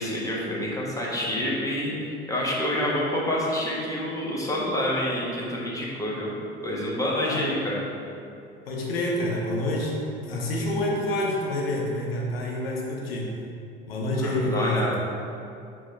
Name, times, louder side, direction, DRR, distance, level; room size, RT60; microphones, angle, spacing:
voice 1, 0.0-1.9 2.3-6.3 6.6-7.8 14.2-15.0, left 1 dB, 10° left, -5 dB, 1.4 m, -27 dB
voice 2, 8.7-10.0 10.2-13.3 13.9-15.0, left 1 dB, 75° left, -2 dB, 1.0 m, -27 dB
6.2 x 4.6 x 3.4 m, 2.6 s
figure-of-eight pair, 65°, 30 cm